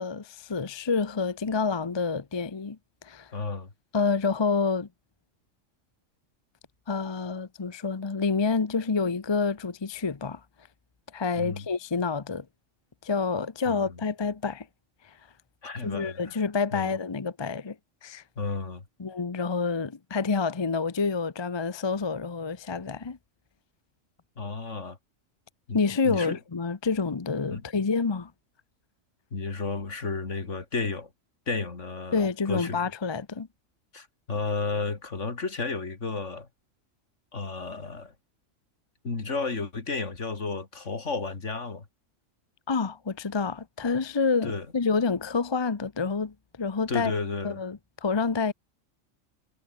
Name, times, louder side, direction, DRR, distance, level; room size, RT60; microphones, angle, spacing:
voice 1, 0.0-2.8 3.0-3.3 3.9-4.9 6.9-10.4 11.1-12.4 13.0-14.7 15.8-17.8 18.0-18.2 19.0-23.2 25.7-28.3 32.1-33.5 42.7-47.1 47.4-48.5, left 4 dB, 25° left, 0.7 m, -28 dB
voice 2, 3.3-3.7 11.3-11.7 13.7-14.0 15.6-16.4 16.7-16.9 18.4-18.8 24.4-25.0 25.7-26.4 27.5-27.7 29.3-31.1 31.5-32.8 33.9-36.5 37.3-38.1 39.0-41.8 44.4-44.7 46.9-47.6, left 4 dB, 65° left, 2.9 m, -32 dB
omnidirectional pair, 1.3 m